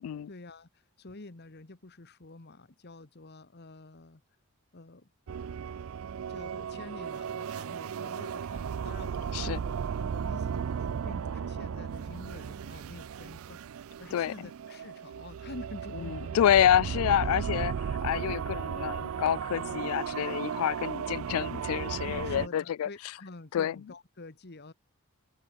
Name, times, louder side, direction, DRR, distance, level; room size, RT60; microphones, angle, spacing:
voice 1, 0.3-4.2 4.7-5.1 6.3-13.6 14.0-16.4 22.1-24.7, left 2 dB, 50° left, 1.3 m, -48 dB
sound 1, 5.3-22.5, right 7 dB, 65° right, 0.4 m, -35 dB
voice 2, 16.0-22.9 23.5-23.8, left 10 dB, 75° left, 0.3 m, -28 dB
head